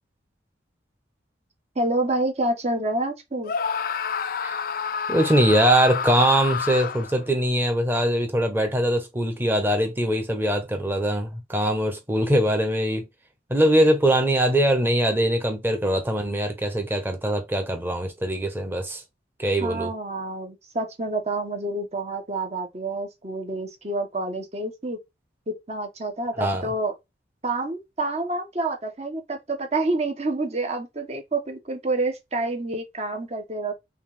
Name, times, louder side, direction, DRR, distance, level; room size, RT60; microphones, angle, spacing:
voice 1, 1.7-3.5 19.6-25.0 25.5-26.9 27.4-33.7, right 2 dB, 35° right, 1.1 m, -28 dB
Screaming, 3.4-7.2, left 6 dB, 50° left, 0.4 m, -29 dB
voice 2, 5.1-13.1 13.5-19.0 19.4-19.9 26.4-26.7, right 1 dB, 10° right, 1.0 m, -22 dB
5.5 x 2.5 x 3.5 m
head